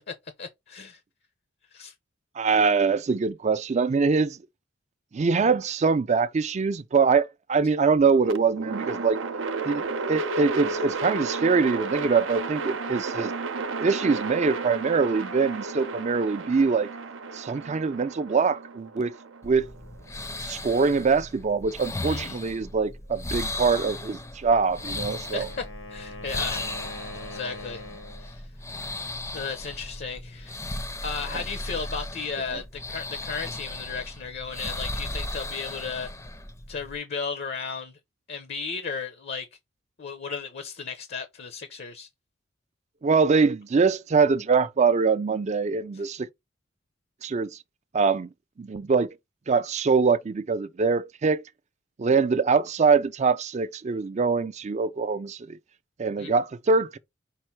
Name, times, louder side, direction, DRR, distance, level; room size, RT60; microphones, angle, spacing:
voice 1, 0.1-1.0 1.7-1.9 22.1-22.4 25.3-25.6 25.9-27.8 28.2-28.4 29.3-30.7 31.0-36.1 36.7-37.9 38.3-39.5 40.0-42.1 45.9-46.0 56.2-56.3, left 5 dB, 55° left, 0.6 m, -35 dB
voice 2, 2.4-4.4 5.1-9.2 9.6-13.3 13.8-16.9 17.3-19.1 19.4-19.6 20.4-25.5 32.5-32.6 43.0-46.3 47.2-47.5 47.9-48.3 48.6-49.1 49.5-51.4 52.0-55.6 56.0-57.0, right 4 dB, 35° right, 0.4 m, -23 dB
sound 1, 8.2-20.3, right 4 dB, 85° right, 0.7 m, -33 dB
sound 2, 19.4-37.0, left 2 dB, 15° left, 0.5 m, -36 dB
Wind instrument woodwind instrument, 24.7-28.3, left 1 dB, 90° left, 1.2 m, -42 dB
5.4 x 2.1 x 4.4 m
head